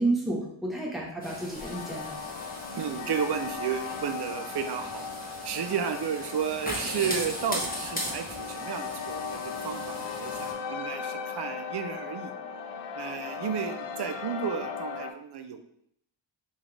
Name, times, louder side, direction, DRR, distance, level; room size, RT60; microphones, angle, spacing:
voice 1, 0.0-2.2, right 2 dB, ahead, -3 dB, 1.0 m, -30 dB
sound 1, 1.2-10.5, equal, 15° left, 1.3 m, -38 dB
sound 2, 1.6-15.1, left 6 dB, 60° left, 0.5 m, -37 dB
voice 2, 2.7-5.1 5.4-12.3 13.0-15.6, right 7 dB, 55° right, 7 dB, 0.5 m, -33 dB
4.0 x 3.5 x 3.3 m, 0.72 s
wide cardioid pair, 75°, 49 cm